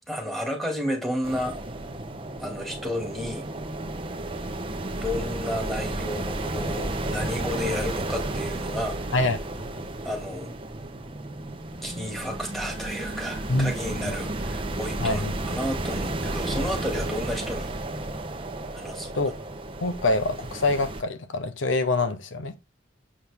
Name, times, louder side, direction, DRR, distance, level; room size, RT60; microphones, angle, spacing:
voice 1, 0.1-1.6 2.4-3.5 4.9-9.2 10.0-10.5 11.8-15.2 15.5-17.7 18.7-19.1, equal, ahead, 2.4 m, -32 dB
sound 1, 1.2-21.0, right 2 dB, 30° right, 1.0 m, -32 dB
voice 2, 9.1-9.7 13.5-13.7 14.0-14.1 15.0-15.3 19.1-19.3 19.8-22.5, left 2 dB, 80° left, 0.9 m, -25 dB
7.5 x 6.3 x 3.5 m
head